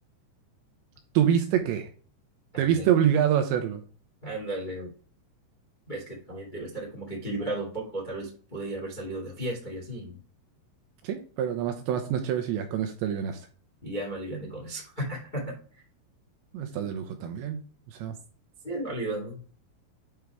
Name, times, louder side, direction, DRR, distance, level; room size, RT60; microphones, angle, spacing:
voice 1, 1.1-1.9 2.6-3.8 11.0-13.4 16.5-17.6 17.9-18.1, right 9 dB, 80° right, 6 dB, 2.7 m, -26 dB
voice 2, 2.5-2.9 4.2-4.9 5.9-10.2 13.8-15.6 18.6-19.4, right 1 dB, 65° left, -3 dB, 0.4 m, -34 dB
9.1 x 3.6 x 4.8 m, 0.41 s
omnidirectional pair, 5.8 m